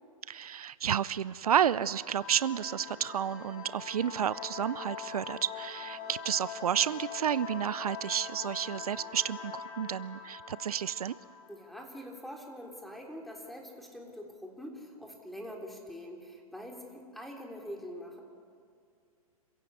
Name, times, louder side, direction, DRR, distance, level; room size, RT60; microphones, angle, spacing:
voice 1, 0.3-11.2, right 9 dB, 80° right, 18 dB, 0.6 m, -31 dB
sound 1, 1.9-12.3, left 6 dB, 45° left, 4.3 m, -43 dB
voice 2, 11.5-18.2, equal, ahead, 0 dB, 3.3 m, -44 dB
27.0 x 16.0 x 8.3 m, 2.3 s
hypercardioid pair, 125°, 19 cm